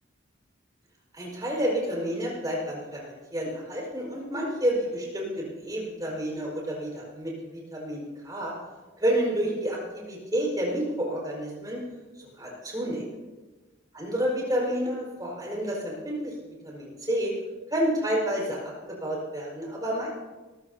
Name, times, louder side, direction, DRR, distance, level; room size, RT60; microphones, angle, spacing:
voice 1, 1.1-8.5 9.0-11.8 12.2-13.1 13.9-16.3 16.6-17.3 17.7-20.1, equal, 20° right, -3 dB, 5.0 m, -30 dB
23.5 x 14.5 x 2.8 m, 1.2 s
head